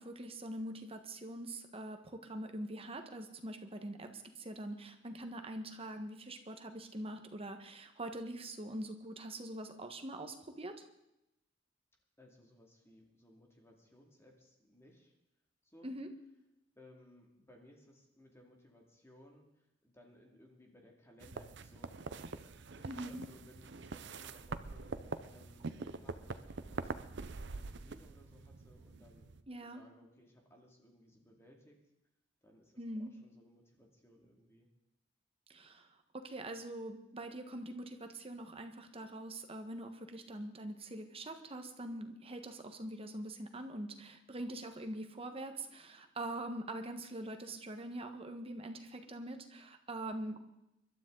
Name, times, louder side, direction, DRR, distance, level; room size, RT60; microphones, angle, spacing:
voice 1, 0.0-10.8 15.8-16.1 22.9-23.2 29.5-29.8 32.8-33.1 35.5-35.9 36.1-50.5, right 1 dB, 30° right, 5 dB, 1.4 m, -44 dB
voice 2, 12.2-15.1 15.6-16.0 16.7-22.1 22.8-25.0 25.3-29.3 29.6-31.8 32.4-34.7, left 1 dB, 15° left, 1 dB, 2.4 m, -62 dB
sound 1, 21.2-29.4, right 3 dB, 65° right, 0.7 m, -44 dB
24.5 x 12.5 x 3.9 m, 0.87 s
head